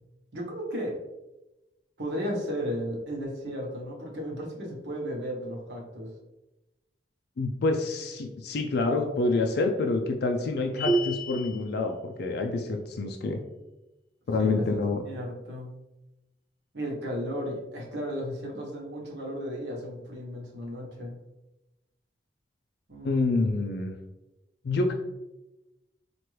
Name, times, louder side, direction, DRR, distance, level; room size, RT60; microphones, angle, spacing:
voice 1, 0.3-1.0 2.0-6.1 14.4-14.8 15.0-15.7 16.7-21.1 22.9-23.5, equal, 70° right, -1 dB, 1.0 m, -34 dB
voice 2, 7.4-13.4 14.3-15.0 23.0-24.0 24.6-24.9, left 3 dB, 65° left, 3 dB, 0.4 m, -27 dB
sound 1, 10.8-11.6, right 2 dB, ahead, 0.9 m, -27 dB
4.5 x 2.5 x 3.1 m, 0.98 s
head